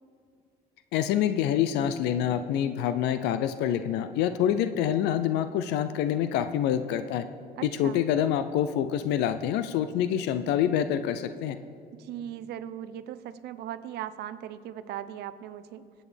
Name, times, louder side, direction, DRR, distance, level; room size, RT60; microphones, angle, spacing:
voice 1, 0.9-7.3 7.6-11.6, left 10 dB, 90° left, 11 dB, 0.5 m, -26 dB
voice 2, 7.6-8.0 12.0-15.8, right 11 dB, 75° right, 12 dB, 0.6 m, -38 dB
25.0 x 8.5 x 3.4 m, 2.3 s
cardioid pair, 110°, 17 cm